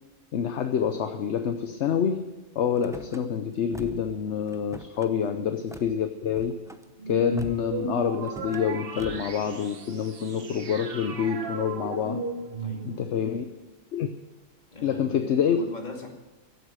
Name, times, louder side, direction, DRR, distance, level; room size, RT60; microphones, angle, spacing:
voice 1, 0.3-2.3 2.5-6.6 7.1-12.2 12.8-13.5 13.9-14.1 14.8-15.6, left 8 dB, 65° left, 8 dB, 1.1 m, -27 dB
Car / Slam, 2.8-3.2 3.7-4.2 4.5-5.1 5.7-5.9 6.3-6.8 7.4-7.8 8.2-8.7 9.0-9.4, right 1 dB, 5° right, 0.4 m, -44 dB
sound 1, 7.0-13.3, right 4 dB, 50° right, 1.2 m, -36 dB
voice 2, 12.6-13.1 14.7-16.1, left 2 dB, 35° left, 1 dB, 2.4 m, -41 dB
15.5 x 8.2 x 9.1 m, 1.1 s
omnidirectional pair, 1.3 m